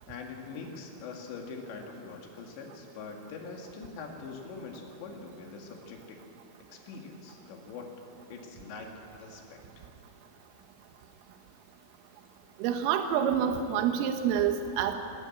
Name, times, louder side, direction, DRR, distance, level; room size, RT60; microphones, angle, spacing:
voice 1, 0.1-6.2 6.7-7.9 8.3-8.9 9.2-9.9, left 4 dB, 65° left, 1 dB, 4.2 m, -43 dB
voice 2, 12.6-14.9, right 8 dB, 85° right, 6 dB, 3.7 m, -27 dB
20.5 x 17.0 x 8.8 m, 2.8 s
omnidirectional pair, 5.8 m